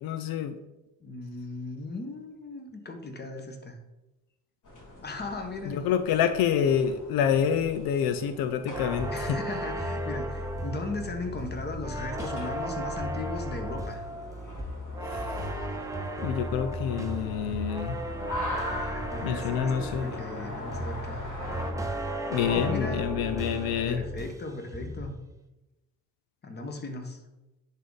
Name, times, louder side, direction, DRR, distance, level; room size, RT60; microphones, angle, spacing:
voice 1, 0.0-0.5 5.7-9.4 15.1-15.2 16.2-18.0 19.2-20.1 22.3-24.0, left 8 dB, 85° left, 10 dB, 0.6 m, -27 dB
voice 2, 1.0-3.8 5.0-5.8 9.1-14.0 18.8-21.2 22.4-23.1 23.6-25.2 26.4-27.2, left 2 dB, 30° left, 4 dB, 1.2 m, -37 dB
sound 1, 4.6-21.7, left 1 dB, 60° left, 2.5 m, -42 dB
sound 2, 8.7-24.5 24.7-25.2, right 1 dB, 10° right, 0.8 m, -35 dB
10.0 x 3.7 x 4.0 m, 0.99 s
cardioid pair, 110°, 34 cm